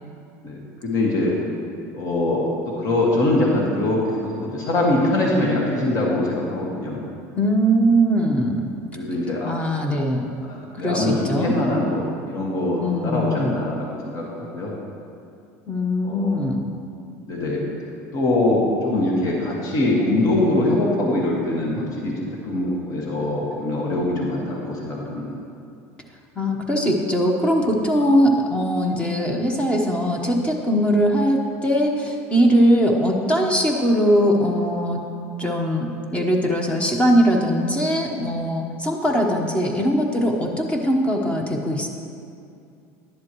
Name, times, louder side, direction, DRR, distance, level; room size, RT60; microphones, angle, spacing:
voice 1, 0.4-1.4 1.9-7.0 8.9-9.5 10.4-14.7 16.1-16.4 17.3-17.6 18.1-22.1 22.4-25.2, left 1 dB, 50° left, -3 dB, 1.9 m, -23 dB
voice 2, 7.4-8.7 9.4-10.3 10.8-11.6 12.8-13.5 15.7-16.7 26.4-35.0 35.4-41.9, equal, 15° left, 1 dB, 1.1 m, -20 dB
11.0 x 10.5 x 3.1 m, 2.4 s
supercardioid pair, 115°, 8 cm